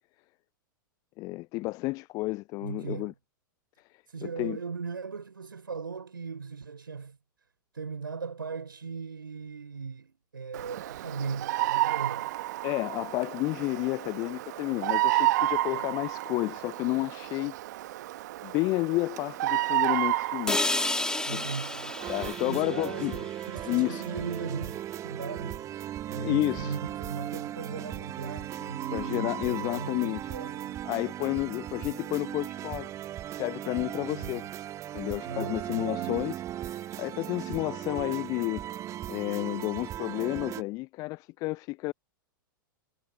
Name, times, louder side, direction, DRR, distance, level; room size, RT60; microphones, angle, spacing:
voice 1, 1.2-3.1 4.2-4.6 12.6-17.5 18.4-20.8 21.3-21.4 22.1-23.1 23.7-24.1 26.2-26.8 28.9-30.3 30.9-32.9 33.4-34.5 34.9-38.6 39.1-41.9, left 22 dB, 30° left, 0.4 m, -31 dB
voice 2, 2.6-3.2 4.1-7.2 7.7-12.3 15.7-16.0 21.2-22.0 22.5-25.7 26.1-30.8 34.1-34.4 35.3-36.2, right 5 dB, 75° right, 5.8 m, -38 dB
Bird vocalization bird call bird song, 10.5-22.3, right 16 dB, 50° right, 1.3 m, -31 dB
sound 1, 20.5-24.5, left 2 dB, 5° left, 2.0 m, -32 dB
sound 2, 22.0-40.6, right 12 dB, 25° right, 1.6 m, -37 dB
figure-of-eight pair, 100°, 12 cm